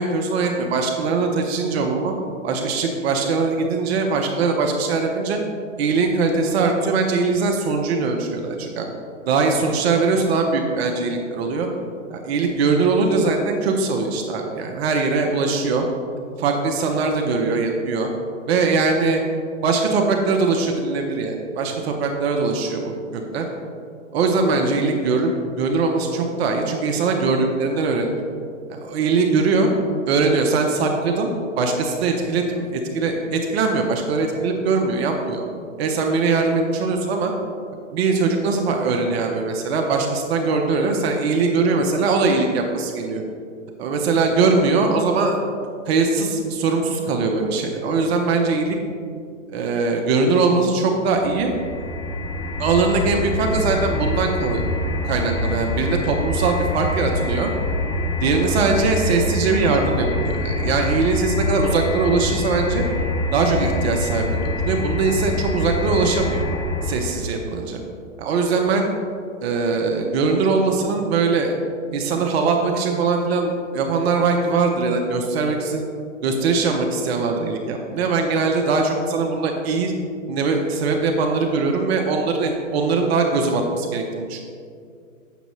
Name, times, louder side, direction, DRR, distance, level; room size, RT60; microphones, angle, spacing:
voice 1, 0.0-2.1 2.4-5.4 5.8-8.9 9.3-11.7 12.1-15.8 16.4-18.1 18.5-19.2 19.6-23.4 24.1-25.3 25.6-28.2 28.7-29.7 30.1-31.3 31.6-35.5 35.8-37.3 37.9-43.2 43.8-45.4 45.9-48.8 49.5-51.5 52.6-54.7 55.0-57.5 58.2-62.8 63.3-66.4 66.8-67.8 68.2-68.9 69.4-71.5 71.9-75.8 76.2-79.9 80.3-84.4, right 4 dB, 50° right, 2 dB, 0.8 m, -21 dB
sound 1, 51.1-67.3, left 1 dB, 15° left, 0.5 m, -25 dB
8.1 x 6.3 x 3.1 m, 2.3 s
hypercardioid pair, 125°, 40 cm